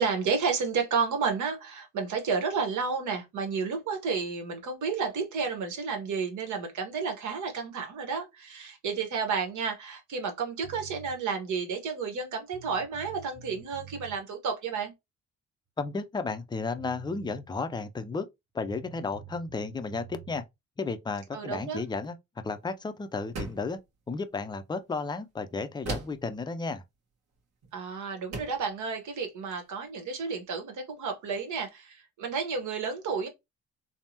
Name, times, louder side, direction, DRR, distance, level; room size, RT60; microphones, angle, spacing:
voice 1, 0.0-14.9 21.3-21.8 27.7-33.3, right 5 dB, 75° right, 1.1 m, -31 dB
sound 1, 10.6-11.2 12.2-12.3 12.5-14.2 16.4-16.5 16.8-17.4 18.7-20.4, right 8 dB, 30° right, 0.9 m, -48 dB
voice 2, 15.8-18.3 18.5-20.4 20.8-22.2 22.4-23.8 24.1-26.8, left 4 dB, 15° left, 0.4 m, -33 dB
sound 2, 23.3-23.8 25.8-26.3 27.6-27.8 28.3-28.7, right 3 dB, 60° right, 1.4 m, -36 dB
3.4 x 2.0 x 2.8 m
cardioid pair, 90°, 30 cm